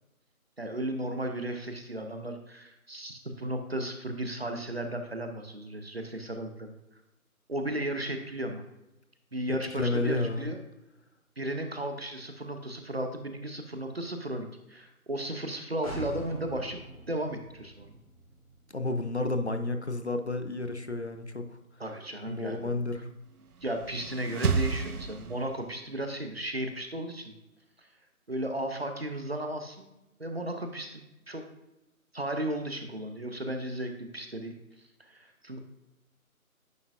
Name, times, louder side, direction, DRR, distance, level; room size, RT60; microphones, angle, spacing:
voice 1, 0.6-6.8 7.5-8.7 9.3-10.6 11.4-16.8 17.1-17.9 21.8-22.8 23.6-27.3 27.8-27.9 28.3-29.9 30.2-31.4 32.1-34.5 35.0-35.6, right 1 dB, 45° right, 5 dB, 0.7 m, -35 dB
voice 2, 9.7-10.5 18.7-21.6 22.3-23.1, left 2 dB, 50° left, 7 dB, 0.6 m, -31 dB
sound 1, 15.8-19.6 19.9-20.0, right 1 dB, 25° left, 1.6 m, -44 dB
sound 2, 23.5-25.9, right 5 dB, 85° right, 0.6 m, -31 dB
9.4 x 4.6 x 2.5 m, 0.94 s
figure-of-eight pair, 160°, 44 cm